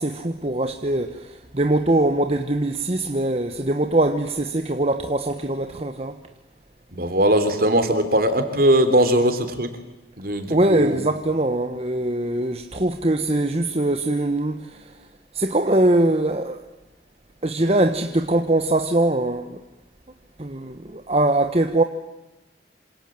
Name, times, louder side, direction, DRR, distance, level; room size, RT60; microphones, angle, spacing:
voice 1, 0.0-6.2 10.5-14.8 15.3-16.6 17.4-19.6 20.4-21.8, right 1 dB, 35° right, 1.2 m, -22 dB
voice 2, 6.9-9.7 10.2-11.0, right 1 dB, 55° right, 3.5 m, -20 dB
27.0 x 26.5 x 7.8 m
head